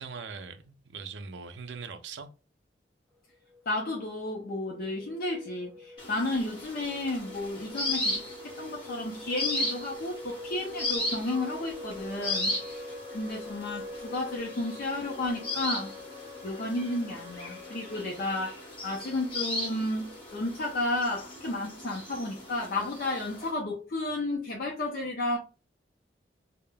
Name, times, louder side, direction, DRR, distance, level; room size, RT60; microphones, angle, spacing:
voice 1, 0.0-2.3, right 5 dB, 75° right, 0.4 m, -41 dB
sound 1, 3.3-21.1, left 1 dB, 5° left, 0.5 m, -46 dB
voice 2, 3.7-15.9 16.4-25.4, left 2 dB, 55° left, 0.5 m, -32 dB
sound 2, 6.0-23.5, left 1 dB, 30° left, 1.1 m, -37 dB
sound 3, 11.2-18.4, left 8 dB, 25° right, 0.7 m, -48 dB
2.2 x 2.0 x 3.2 m
head